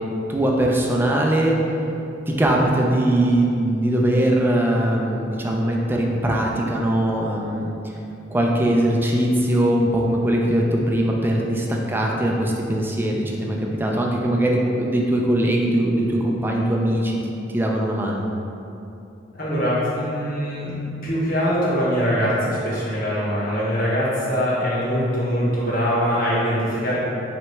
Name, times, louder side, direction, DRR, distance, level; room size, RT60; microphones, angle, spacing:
voice 1, 0.3-1.6 2.3-7.7 8.3-18.3, right 1 dB, 10° right, -1 dB, 0.4 m, -21 dB
voice 2, 19.3-27.0, equal, 50° left, -8 dB, 1.1 m, -23 dB
3.2 x 3.0 x 4.4 m, 2.8 s
head